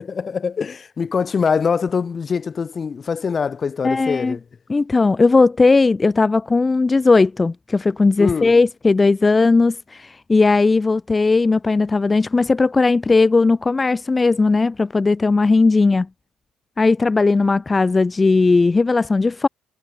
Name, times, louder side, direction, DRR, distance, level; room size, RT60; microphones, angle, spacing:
voice 1, 0.0-4.4 8.2-8.6, left 6 dB, 40° left, 3.4 m, -23 dB
voice 2, 3.8-4.3 4.7-16.1 16.8-19.5, left 3 dB, 25° left, 3.0 m, -17 dB
supercardioid pair, 70°, 0 cm